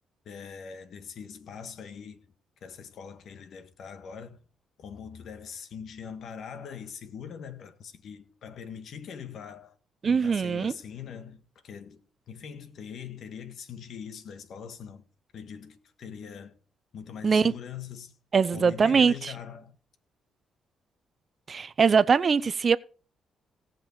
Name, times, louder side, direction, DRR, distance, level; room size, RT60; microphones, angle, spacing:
voice 1, 0.2-2.3 2.6-4.4 4.8-9.8 10.0-12.0 12.3-15.0 15.3-16.5 16.9-18.1 18.5-19.8, left 7 dB, 65° left, 1.5 m, -42 dB
voice 2, 10.0-10.7 17.2-17.5 18.3-19.3 21.5-22.8, right 5 dB, 40° right, 0.6 m, -22 dB
17.5 x 6.1 x 4.7 m
cardioid pair, 90°, 0 cm